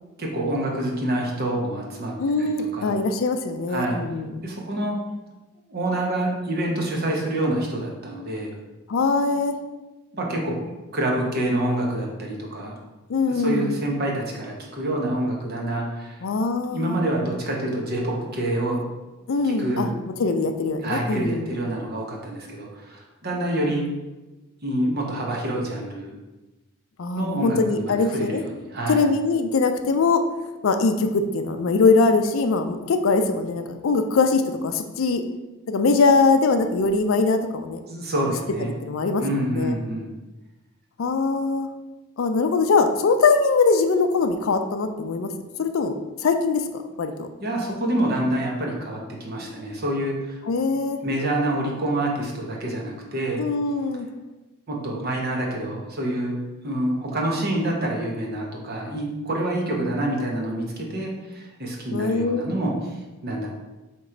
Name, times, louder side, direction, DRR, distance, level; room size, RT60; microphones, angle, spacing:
voice 1, 0.2-2.9 3.7-4.0 4.4-5.0 5.7-8.5 10.1-12.8 13.3-16.2 16.7-18.8 19.4-19.9 20.8-23.9 24.6-26.1 27.1-29.0 37.9-38.7 39.2-40.1 47.4-50.4 51.0-53.4 54.7-56.4 56.6-63.0 63.2-63.5, right 1 dB, 50° right, -1 dB, 0.9 m, -27 dB
voice 2, 2.2-4.5 8.9-9.5 13.1-13.7 16.2-17.0 19.3-19.9 20.2-21.5 27.0-28.4 28.9-30.2 30.6-35.2 35.7-37.8 38.8-39.8 41.0-41.7 42.2-45.3 45.6-47.3 50.5-51.0 53.4-54.1 61.9-62.4, left 4 dB, 70° left, 7 dB, 0.4 m, -22 dB
4.4 x 3.0 x 3.8 m, 1.1 s
head